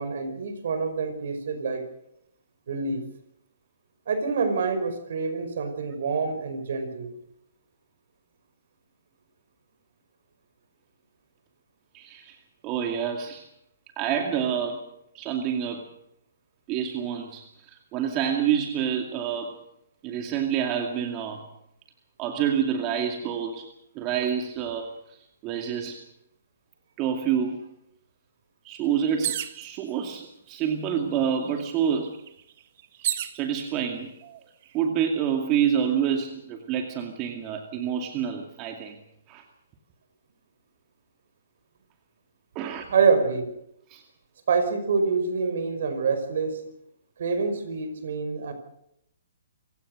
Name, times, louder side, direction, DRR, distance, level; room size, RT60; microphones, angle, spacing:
voice 1, 0.0-1.8 2.7-3.0 4.1-7.1 42.9-43.5 44.5-46.6 47.2-48.5, right 5 dB, 65° right, 9 dB, 5.2 m, -26 dB
voice 2, 11.9-12.4 12.6-13.4 14.0-14.8 15.1-15.8 16.7-19.6 20.0-21.5 22.2-23.7 24.0-25.2 25.4-26.0 27.0-27.6 28.6-32.1 33.3-34.1 34.7-39.0 39.3-39.4 42.5-42.8 43.9-44.0, right 8 dB, 30° right, 4 dB, 2.4 m, -27 dB
sound 1, 29.2-29.7 30.6-30.7 31.0-33.4 34.2-34.7, right 12 dB, 45° right, 1.7 m, -32 dB
27.0 x 16.5 x 6.6 m, 0.78 s
hypercardioid pair, 145°, 0 cm